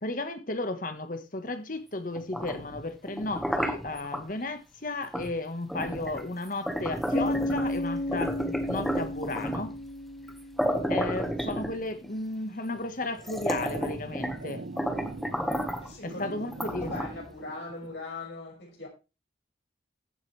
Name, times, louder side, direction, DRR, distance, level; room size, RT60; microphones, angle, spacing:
voice 1, 0.0-8.4 8.7-9.7 10.9-14.6 16.0-16.9, left 2 dB, 45° left, 1.5 m, -34 dB
sound 1, 2.2-4.2 5.1-5.3 5.7-7.8 8.1-9.8 10.3-10.4 10.6-12.1 12.7-12.8 13.2-14.5 14.8-15.9 16.5-17.3, equal, ahead, 1.4 m, -32 dB
Bass guitar, 7.1-10.9, left 1 dB, 20° left, 1.2 m, -32 dB
sound 2, 13.0-18.0, right 2 dB, 80° right, 0.9 m, -43 dB
voice 2, 15.8-18.9, left 3 dB, 75° left, 6.1 m, -40 dB
15.0 x 8.0 x 3.4 m
head